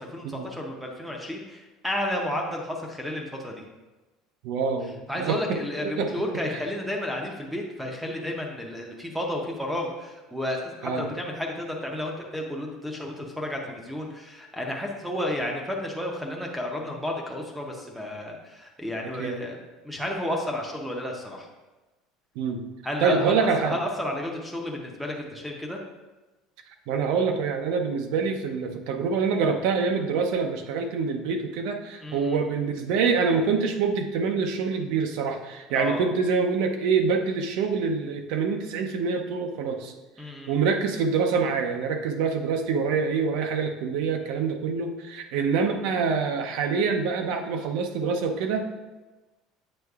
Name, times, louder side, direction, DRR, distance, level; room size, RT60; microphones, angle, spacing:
voice 1, 0.0-3.6 5.1-21.5 22.8-25.8 32.0-32.4 35.7-36.0 40.2-40.5, left 1 dB, ahead, 0 dB, 0.6 m, -32 dB
voice 2, 4.4-6.1 10.8-11.1 19.2-19.4 22.4-22.6 23.0-23.8 26.9-39.9 40.5-48.7, right 5 dB, 65° right, 5 dB, 0.5 m, -26 dB
7.8 x 5.5 x 2.3 m, 1.1 s
cardioid pair, 170°, 0 cm